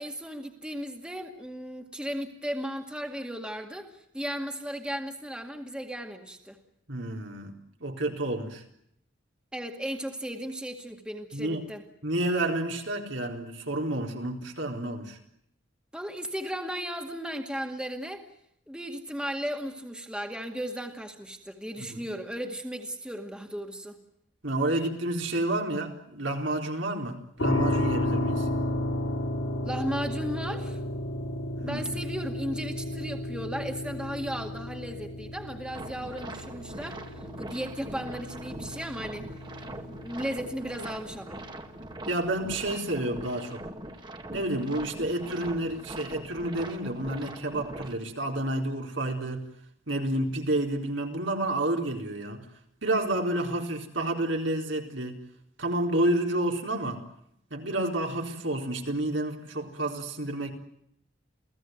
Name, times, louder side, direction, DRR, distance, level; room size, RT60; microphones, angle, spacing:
voice 1, 0.0-6.6 9.5-11.8 15.9-18.3 18.7-24.0 29.6-30.8 31.6-39.3 40.0-41.4, equal, 5° right, 4 dB, 2.1 m, -35 dB
voice 2, 6.9-8.6 11.3-11.6 12.0-15.2 21.8-22.0 24.4-28.5 31.6-31.9 42.1-43.6 44.3-49.4 49.9-52.4 52.8-55.2 55.6-57.0 57.5-60.5, right 1 dB, 70° right, 2 dB, 4.2 m, -30 dB
sound 1, 27.4-42.2, left 1 dB, 85° left, 7.9 m, -33 dB
sound 2, 35.7-47.9, right 1 dB, 25° right, 2.0 m, -42 dB
29.0 x 17.5 x 9.4 m, 0.73 s
head